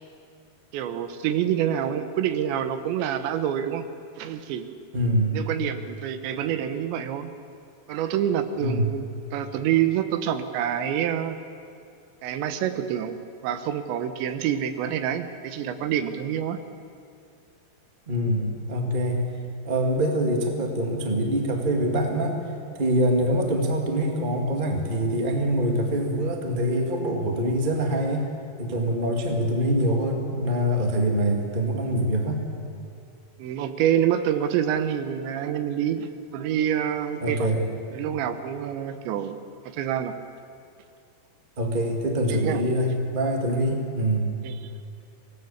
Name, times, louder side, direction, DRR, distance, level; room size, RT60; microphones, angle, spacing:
voice 1, 0.7-3.9 4.2-4.7 5.3-7.3 7.9-9.1 9.3-11.4 12.2-13.2 13.4-16.6 33.4-37.5 37.9-39.4 39.7-40.2 42.3-42.6 44.4-44.5, right 10 dB, 85° right, 10 dB, 3.4 m, -27 dB
voice 2, 4.9-5.4 8.6-8.9 18.1-19.3 19.6-22.4 22.7-28.3 28.6-32.4 37.2-37.7 41.6-44.3, equal, 25° right, 2 dB, 1.0 m, -24 dB
24.5 x 19.0 x 7.2 m, 2.4 s
omnidirectional pair, 5.0 m